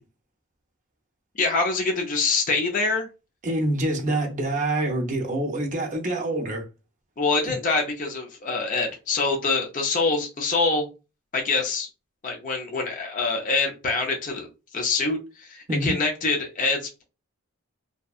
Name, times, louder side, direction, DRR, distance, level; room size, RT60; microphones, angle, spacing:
voice 1, 1.4-3.1 7.2-10.9 11.3-11.9 12.2-17.0, left 3 dB, 35° left, 0.4 m, -25 dB
voice 2, 3.4-6.6 15.7-15.9, right 1 dB, 35° right, 0.5 m, -26 dB
2.7 x 2.1 x 2.3 m
head